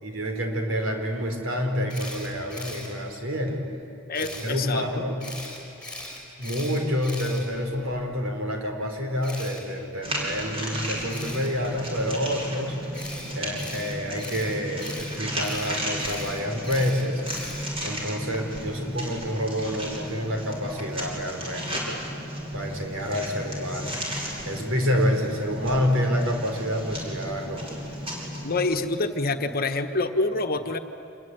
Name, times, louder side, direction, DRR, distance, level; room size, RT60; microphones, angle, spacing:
voice 1, 0.0-3.6 4.1-5.2 6.4-12.8 13.3-17.2 17.8-22.1 22.5-24.0 24.5-27.8, equal, 70° right, 3 dB, 4.4 m, -28 dB
Camera, 1.9-2.9 4.1-4.5 5.2-8.0 9.2-9.6 11.1-11.5 12.9-17.9, left 1 dB, 5° left, 6.0 m, -39 dB
voice 2, 4.1-4.8 28.4-30.8, left 3 dB, 45° left, 7 dB, 1.4 m, -26 dB
sound 1, 10.0-28.8, equal, 30° right, 5.9 m, -34 dB
26.5 x 21.5 x 9.5 m, 2.8 s
head